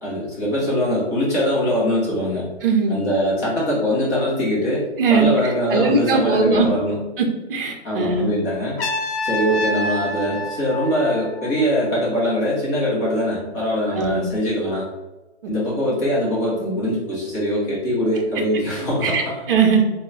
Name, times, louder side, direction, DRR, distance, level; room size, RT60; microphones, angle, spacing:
voice 1, 0.0-2.5 2.9-7.0 7.8-8.8 9.2-14.9 15.5-19.4, equal, 15° left, -7 dB, 0.5 m, -22 dB
voice 2, 2.6-3.0 5.0-5.3 5.7-6.7 7.2-8.4 14.0-14.3 19.0-19.2 19.5-19.8, right 4 dB, 50° right, 2 dB, 0.6 m, -19 dB
Trumpet, 8.8-11.8, left 1 dB, 60° left, 0.6 m, -27 dB
2.2 x 2.0 x 3.7 m, 1.1 s
hypercardioid pair, 145°, 35 cm